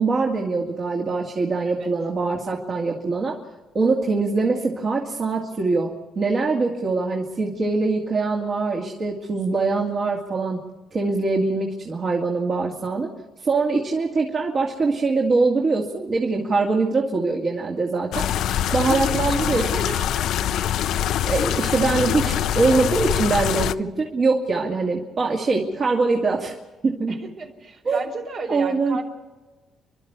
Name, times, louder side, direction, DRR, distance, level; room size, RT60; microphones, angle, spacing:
voice 1, 0.0-3.4 3.7-10.6 10.9-13.1 13.4-18.3 18.7-19.9 21.2-26.5 26.8-27.2 27.8-28.0 28.5-29.0, right 3 dB, 50° right, -1 dB, 2.5 m, -23 dB
sound 1, 18.1-23.7, left 10 dB, 80° left, 0.6 m, -24 dB
voice 2, 18.6-20.3 27.1-29.0, right 3 dB, 70° right, 2 dB, 4.3 m, -35 dB
30.0 x 12.5 x 8.2 m, 1.3 s
cardioid pair, 90°, 0 cm